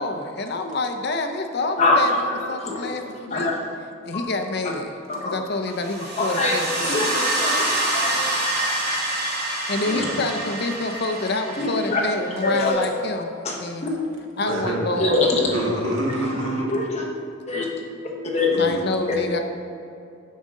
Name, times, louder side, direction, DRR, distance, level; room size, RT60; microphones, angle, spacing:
voice 1, 0.0-3.5 4.1-5.0 5.2-7.0 9.7-13.9 14.4-15.2 18.5-19.4, left 2 dB, 50° left, 6 dB, 0.6 m, -27 dB
voice 2, 1.8-3.0 3.3-3.5 4.1-4.3 5.1-5.4 6.2-8.4 11.6-12.0 12.4-12.9 13.4-13.9 15.0-15.6 16.7-17.0 17.5-17.7 18.3-18.5, left 2 dB, 30° left, -1 dB, 1.1 m, -24 dB
sound 1, 5.8-12.7, right 1 dB, 50° right, 2.0 m, -26 dB
voice 3, 9.8-10.2 14.4-14.8 15.4-16.7 18.5-18.8, right 1 dB, 70° right, -3 dB, 1.8 m, -26 dB
9.3 x 6.3 x 3.7 m, 2.5 s
head